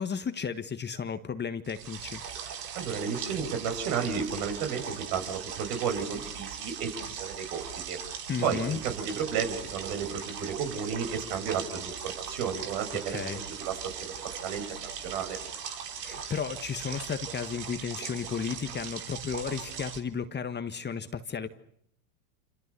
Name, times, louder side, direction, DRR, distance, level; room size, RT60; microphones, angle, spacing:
voice 1, 0.0-2.2 8.3-8.8 13.1-13.4 16.0-21.5, left 6 dB, 20° left, 10 dB, 1.6 m, -33 dB
sound 1, 1.6-20.0, right 7 dB, 80° right, 3.7 m, -39 dB
voice 2, 2.7-8.0 8.4-13.7 14.0-14.6 14.9-15.4, right 7 dB, 60° right, 6 dB, 7.2 m, -33 dB
28.5 x 27.0 x 6.9 m, 0.70 s
hypercardioid pair, 95°, 47 cm